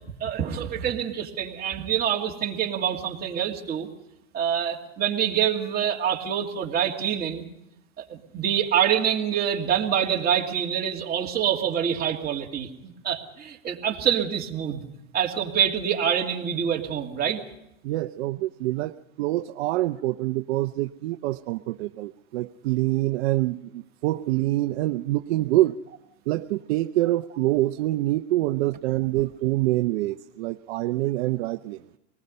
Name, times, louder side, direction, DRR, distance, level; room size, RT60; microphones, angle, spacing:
voice 1, 0.2-3.9 4.3-7.4 8.0-14.8 15.1-17.4, right 9 dB, 25° right, -1 dB, 2.6 m, -26 dB
voice 2, 17.8-25.8 26.3-31.8, right 17 dB, 60° right, 7 dB, 0.7 m, -26 dB
24.5 x 20.0 x 5.4 m, 0.86 s
supercardioid pair, 135°, 37 cm